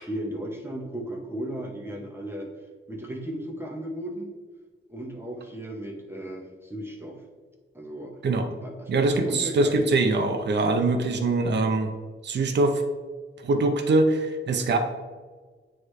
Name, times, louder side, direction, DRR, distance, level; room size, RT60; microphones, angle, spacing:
voice 1, 0.0-2.5 2.9-4.3 4.9-7.2 7.7-8.1 8.6-9.8, right 1 dB, 10° right, -1 dB, 0.8 m, -35 dB
voice 2, 8.9-11.9 12.2-12.8 13.4-14.8, right 2 dB, 55° right, 6 dB, 0.6 m, -23 dB
9.3 x 3.2 x 3.2 m, 1.5 s
wide cardioid pair, 155°, 21 cm